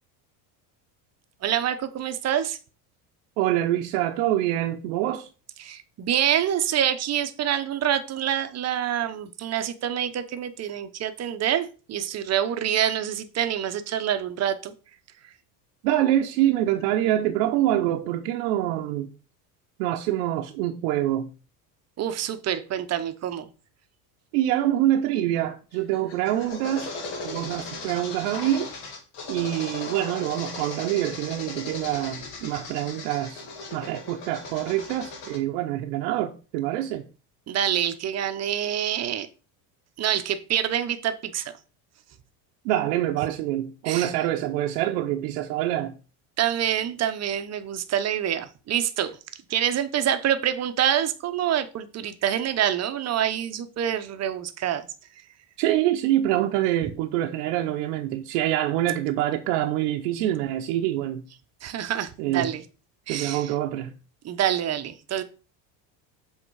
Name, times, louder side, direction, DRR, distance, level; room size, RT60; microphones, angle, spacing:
voice 1, 1.4-2.6 5.6-14.7 22.0-23.5 37.5-39.3 40.0-41.5 43.8-44.1 46.4-49.2 49.5-54.8 61.6-62.6 63.1-63.5 64.2-65.2, right 10 dB, 35° right, 0.8 m, -26 dB
voice 2, 3.4-5.3 15.8-19.1 19.8-21.3 24.3-26.9 27.2-28.7 29.3-33.4 33.7-37.1 42.6-46.0 55.6-61.2 62.2-62.5 63.1-63.9, right 13 dB, 80° right, 0.8 m, -25 dB
sound 1, 25.7-35.4, left 3 dB, 65° left, 2.1 m, -38 dB
7.7 x 3.7 x 4.7 m
supercardioid pair, 125°, 47 cm